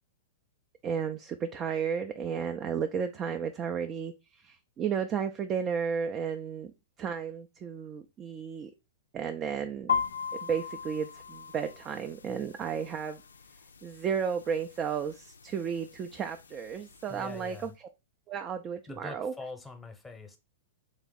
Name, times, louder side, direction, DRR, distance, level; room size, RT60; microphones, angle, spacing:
voice 1, 0.8-6.7 7.0-8.7 9.1-10.0 10.4-13.2 13.8-17.7 18.3-19.3, right 7 dB, 30° right, 0.4 m, -33 dB
sound 1, 9.9-17.7, left 7 dB, 85° left, 0.3 m, -39 dB
voice 2, 17.1-17.7 18.9-20.4, left 3 dB, 5° left, 0.9 m, -44 dB
3.3 x 3.1 x 3.7 m
hypercardioid pair, 105°, 0 cm